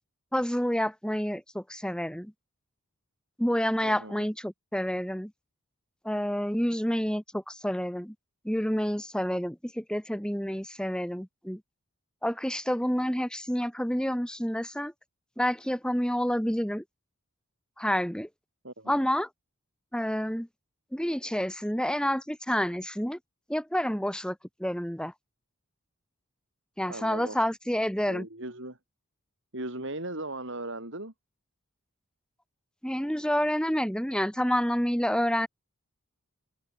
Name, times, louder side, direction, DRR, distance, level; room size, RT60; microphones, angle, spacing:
voice 1, 0.3-2.3 3.4-5.3 6.0-8.1 8.4-11.6 12.2-14.9 15.4-16.8 17.8-18.3 18.9-19.3 19.9-20.5 20.9-23.2 23.5-25.1 26.8-28.3 32.8-35.5, equal, 5° left, 3.9 m, -29 dB
voice 2, 3.8-4.3 18.6-19.0 26.9-27.4 28.1-28.8 29.5-31.1, right 2 dB, 60° right, 7.2 m, -38 dB
head